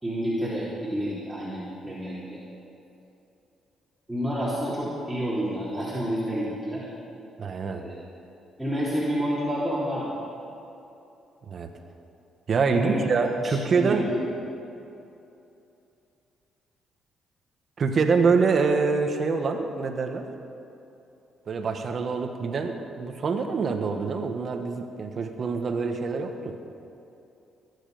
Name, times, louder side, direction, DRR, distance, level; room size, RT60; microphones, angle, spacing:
voice 1, 0.0-2.4 4.1-6.8 7.7-8.0 8.6-10.3 12.7-13.0 13.4-14.2, equal, 5° right, -9 dB, 3.7 m, -29 dB
voice 2, 7.4-7.8 11.5-11.7 12.5-14.1 17.8-20.2 21.5-26.6, right 4 dB, 50° right, 5 dB, 1.5 m, -25 dB
22.0 x 10.0 x 5.2 m, 2.8 s
cardioid pair, 90°, 0 cm